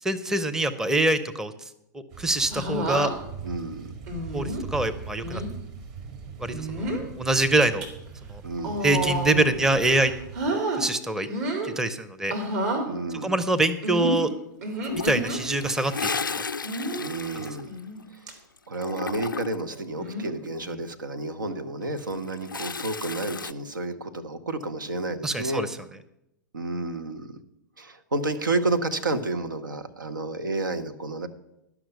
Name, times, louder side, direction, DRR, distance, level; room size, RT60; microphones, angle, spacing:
voice 1, 0.0-1.5 1.9-3.1 4.3-5.4 6.4-6.9 7.2-7.9 8.3-8.4 8.8-10.1 10.5-11.3 11.6-12.3 13.2-14.3 14.9-16.2 17.3-17.5 25.2-25.8, right 2 dB, 5° right, 9 dB, 0.6 m, -25 dB
sound 1, 2.1-10.5, right 5 dB, 40° right, 1.7 m, -41 dB
sound 2, 2.5-3.1 4.1-4.6 5.2-5.5 6.5-7.1 7.6-7.9 8.6-9.5 9.9-10.8 11.2-11.7 12.3-12.9 13.8-15.4 16.6-17.0 17.7-18.0 18.3-18.4 20.0-20.4 21.4-21.7, right 1 dB, 55° right, 2.8 m, -30 dB
voice 2, 3.4-3.9 8.4-8.8 12.8-13.3 17.0-17.7 18.1-18.3 18.7-25.7 26.5-27.4 27.8-31.3, right 2 dB, 80° right, 8 dB, 1.0 m, -30 dB
Toilet flush, 14.8-18.3 18.6-19.7 21.8-23.5, left 5 dB, 90° left, 0.4 m, -33 dB
11.5 x 6.0 x 7.9 m, 0.84 s
figure-of-eight pair, 105°, 11 cm